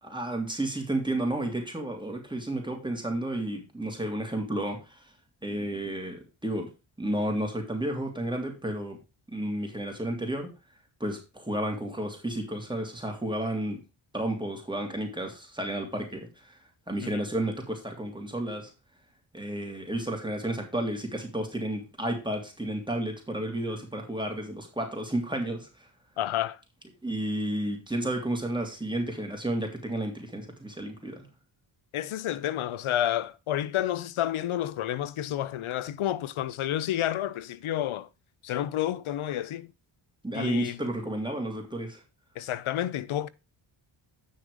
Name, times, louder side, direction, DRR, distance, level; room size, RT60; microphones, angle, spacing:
voice 1, 0.0-5.1 5.4-6.7 7.0-9.0 9.3-10.5 11.0-13.8 14.1-18.7 19.3-25.9 27.0-31.3 40.2-42.0, right 1 dB, 10° right, 3.0 m, -32 dB
voice 2, 26.2-26.6 31.9-38.1 38.4-39.7 40.3-40.8 42.4-43.3, left 12 dB, 85° left, 0.7 m, -30 dB
9.2 x 6.5 x 4.9 m
cardioid pair, 65°, 48 cm